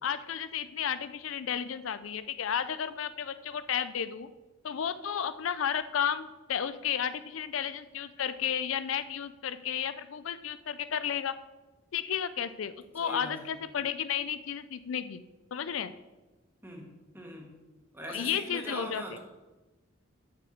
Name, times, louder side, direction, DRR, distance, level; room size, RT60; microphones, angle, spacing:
voice 1, 0.0-4.3 4.6-11.3 11.9-15.2 15.5-15.9 18.1-19.0, left 8 dB, 75° left, 13 dB, 0.5 m, -33 dB
voice 2, 13.0-13.5 16.6-17.6 17.9-19.2, equal, 10° right, 0 dB, 1.7 m, -42 dB
6.9 x 6.9 x 6.5 m, 1.1 s
head